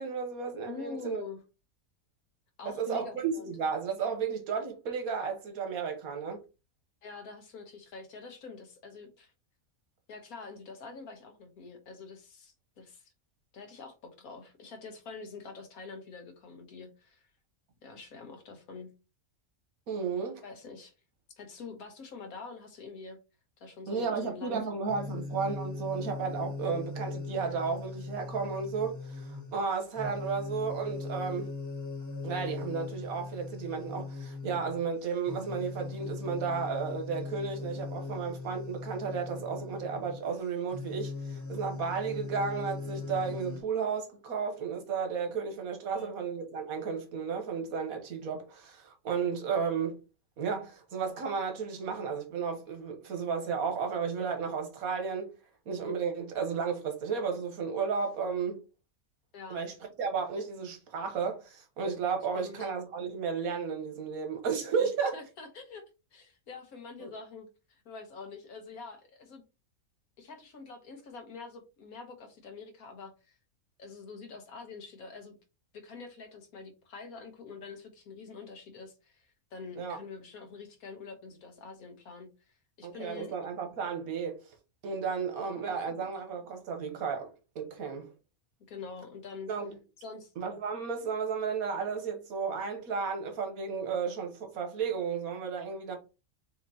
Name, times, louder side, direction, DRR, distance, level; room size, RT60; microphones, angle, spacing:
voice 1, 0.0-1.2 2.6-6.4 19.9-20.4 23.9-31.5 32.2-50.0 50.4-55.3 55.7-58.6 59.5-65.2 67.0-67.1 79.8-80.0 82.8-84.4 84.8-87.3 87.5-88.1 89.5-89.8 90.4-96.0, right 6 dB, 90° right, 1.5 m, -33 dB
voice 2, 0.7-1.4 2.6-3.5 7.0-9.3 10.1-13.1 13.5-17.2 17.8-18.9 20.4-20.9 21.4-23.2 23.6-24.6 25.0-25.3 45.9-46.2 59.3-59.6 62.3-62.7 64.8-65.8 66.1-69.4 70.2-73.4 73.8-75.4 75.7-83.4 85.4-86.1 88.7-89.5 90.0-90.3, left 4 dB, 90° left, 1.6 m, -46 dB
sound 1, 24.9-43.6, left 4 dB, 25° left, 0.4 m, -40 dB
6.4 x 2.9 x 2.8 m
omnidirectional pair, 1.5 m